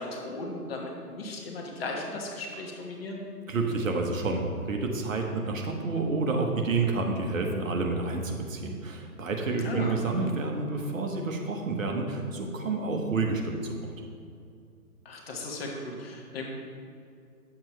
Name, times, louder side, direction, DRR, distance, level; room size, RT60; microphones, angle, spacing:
voice 1, 0.0-3.2 9.6-10.0 15.0-16.5, left 2 dB, 40° left, 0 dB, 1.3 m, -36 dB
voice 2, 3.5-13.9, right 3 dB, 55° right, 2 dB, 1.1 m, -29 dB
9.0 x 7.2 x 3.2 m, 2.4 s
figure-of-eight pair, 145°, 46 cm